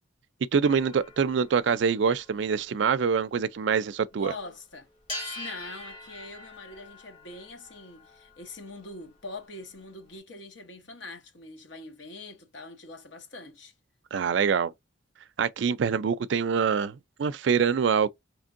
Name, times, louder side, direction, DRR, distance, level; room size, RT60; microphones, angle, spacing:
voice 1, 0.5-4.3 14.1-14.7 15.4-18.1, right 6 dB, 70° right, 0.4 m, -25 dB
sound 1, 0.6-4.1 4.4-4.6 5.0-10.1, left 1 dB, 30° left, 1.8 m, -44 dB
voice 2, 4.1-4.9 5.2-13.7, left 2 dB, 70° left, 1.1 m, -43 dB
4.4 x 3.2 x 2.5 m
head